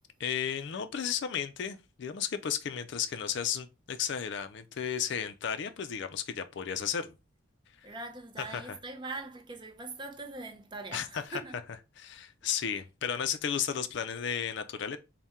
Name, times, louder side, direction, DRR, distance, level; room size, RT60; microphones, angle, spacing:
voice 1, 0.2-7.1 8.5-8.8 10.9-11.4 12.0-15.0, left 8 dB, 55° left, 0.4 m, -34 dB
voice 2, 7.8-11.6, right 3 dB, 20° right, 0.5 m, -42 dB
4.1 x 2.2 x 3.5 m
head